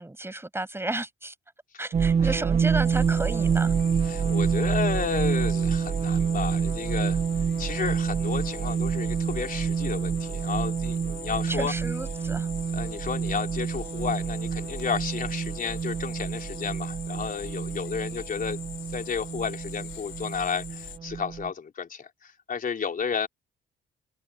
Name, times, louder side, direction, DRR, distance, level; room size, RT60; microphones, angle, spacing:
voice 1, 0.0-1.3 1.8-3.7 11.5-12.5, right 2 dB, 10° right, 5.8 m, -33 dB
sound 1, 1.9-21.5, right 6 dB, 30° right, 0.5 m, -27 dB
sound 2, 2.8-21.0, left 11 dB, 75° left, 3.8 m, -43 dB
voice 2, 4.0-7.2 7.6-11.7 12.7-18.6 18.9-23.3, left 6 dB, 45° left, 3.8 m, -32 dB
cardioid pair, 90°, 20 cm